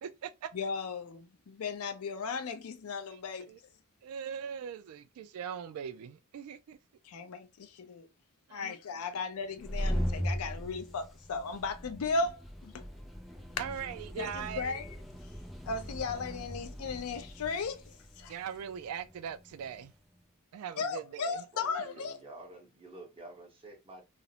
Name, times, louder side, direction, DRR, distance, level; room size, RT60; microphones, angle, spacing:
voice 1, 0.0-0.5 3.1-3.2 3.5-3.6 4.0-6.8 8.5-8.7 13.6-14.8 18.3-19.9 20.5-21.4, right 8 dB, 75° right, 0.3 m, -40 dB
voice 2, 0.5-3.6 7.0-8.1 8.5-12.9 14.2-14.9 15.7-18.3 20.8-22.2, left 4 dB, 70° left, 0.5 m, -36 dB
sound 1, 9.4-19.9, equal, ahead, 0.4 m, -39 dB
voice 3, 21.5-24.0, right 2 dB, 25° right, 0.9 m, -50 dB
2.4 x 2.0 x 2.7 m
head